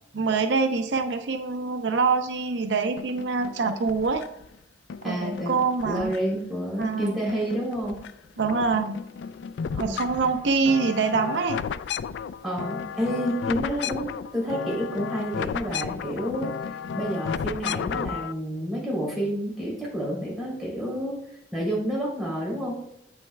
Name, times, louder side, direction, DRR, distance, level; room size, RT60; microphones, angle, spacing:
voice 1, 0.1-4.3 5.0-6.4 6.8-7.2 8.4-9.0 9.8-11.6, right 4 dB, 85° right, 8 dB, 0.6 m, -25 dB
sound 1, 3.0-4.5 4.9-6.5 6.8-8.1 8.4-18.3, left 7 dB, 85° left, 0.3 m, -34 dB
voice 2, 5.0-5.5 5.8-8.0 9.7-10.0 12.4-21.2 21.5-22.8, equal, ahead, -6 dB, 3.3 m, -29 dB
8.8 x 8.1 x 2.3 m, 0.74 s
head